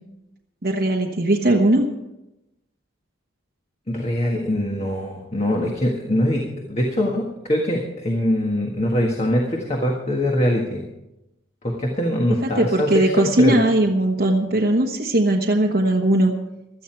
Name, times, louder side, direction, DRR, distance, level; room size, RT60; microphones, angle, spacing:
voice 1, 0.6-1.9 12.6-16.3, right 1 dB, 55° right, 0 dB, 1.2 m, -19 dB
voice 2, 3.9-10.8 11.6-13.6, left 1 dB, 30° left, 0 dB, 1.5 m, -23 dB
16.5 x 12.5 x 4.6 m, 0.94 s
head